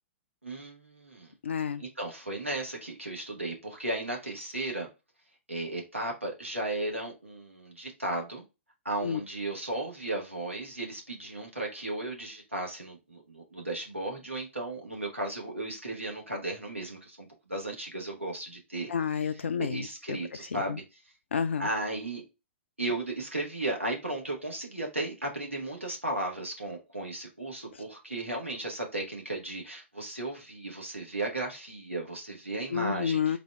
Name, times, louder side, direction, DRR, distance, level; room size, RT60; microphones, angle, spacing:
voice 1, 0.4-1.3 1.8-4.9 5.5-8.4 8.8-18.9 19.6-20.8 21.6-22.2 22.8-33.4, right 2 dB, 90° right, 1.5 m, -35 dB
voice 2, 1.4-1.8 9.0-9.2 18.9-20.2 20.5-20.8 21.3-21.7 32.7-33.4, left 7 dB, 70° left, 0.4 m, -30 dB
4.2 x 2.8 x 3.5 m
figure-of-eight pair, 110°, 7 cm